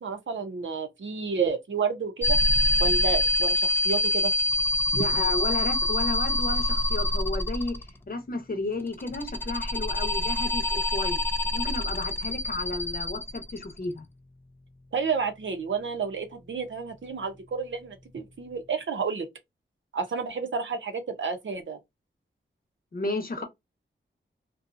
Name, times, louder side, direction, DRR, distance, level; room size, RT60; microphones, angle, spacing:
voice 1, 0.0-2.4 2.8-4.3 4.9-5.1 14.9-19.3 19.9-21.8, right 5 dB, 65° right, 0.7 m, -30 dB
sound 1, 2.2-8.0 8.9-13.8, left 2 dB, 10° left, 0.3 m, -26 dB
voice 2, 5.0-11.2 11.5-14.0 22.9-23.4, left 2 dB, 45° left, 0.8 m, -32 dB
2.6 x 2.3 x 2.5 m
wide cardioid pair, 100°, 21 cm